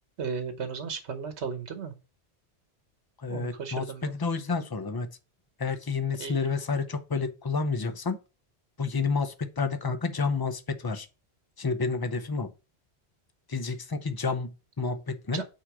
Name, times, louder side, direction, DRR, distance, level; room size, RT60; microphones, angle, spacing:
voice 1, 0.2-1.9 3.3-4.1 6.2-6.5 15.3-15.4, right 5 dB, 80° right, 1.3 m, -35 dB
voice 2, 3.2-5.2 5.6-8.2 8.8-11.1 11.6-12.5 13.5-15.4, left 4 dB, 25° left, 0.6 m, -30 dB
6.2 x 4.7 x 4.7 m
omnidirectional pair, 1.1 m